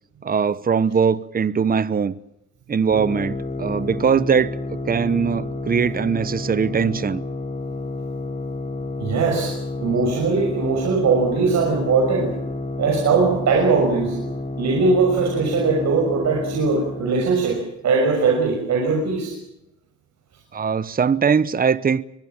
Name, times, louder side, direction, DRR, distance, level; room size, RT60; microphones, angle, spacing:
voice 1, 0.2-2.1 2.7-4.5 4.9-7.2 20.5-22.0, right 6 dB, 30° right, 0.9 m, -21 dB
sound 1, 2.9-17.5, left 2 dB, 25° left, 3.7 m, -30 dB
voice 2, 9.0-9.5 9.8-12.3 12.8-14.2 14.6-19.3, right 4 dB, 65° right, 6.1 m, -20 dB
24.0 x 20.5 x 7.3 m
cardioid pair, 90°, 30 cm